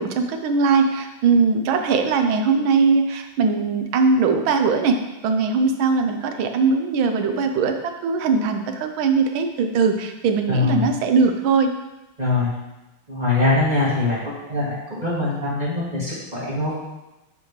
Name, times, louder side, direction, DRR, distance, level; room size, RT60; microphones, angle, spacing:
voice 1, 0.0-5.0 5.2-11.7, right 4 dB, 70° right, 6 dB, 1.4 m, -20 dB
voice 2, 10.5-10.8 12.2-12.5 13.1-14.2 14.5-16.7, left 3 dB, 20° right, -8 dB, 2.5 m, -22 dB
10.0 x 4.8 x 3.2 m, 1.0 s
omnidirectional pair, 2.4 m